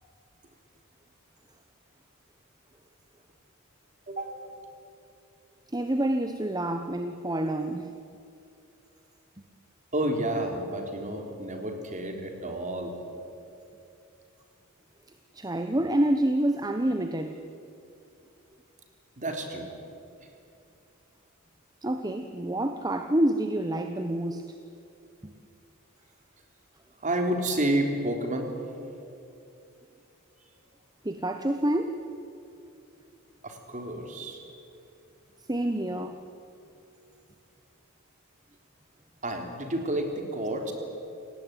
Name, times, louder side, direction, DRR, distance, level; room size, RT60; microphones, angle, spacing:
voice 1, 4.1-4.4 9.9-12.9 19.2-19.7 27.0-28.5 33.4-34.4 39.2-40.7, right 1 dB, 35° right, 3 dB, 3.7 m, -30 dB
voice 2, 5.7-7.9 15.3-17.4 21.8-24.4 25.2-25.3 31.0-32.0 35.5-36.2, right 1 dB, 20° right, 7 dB, 1.0 m, -27 dB
28.5 x 18.5 x 9.3 m, 2.6 s
head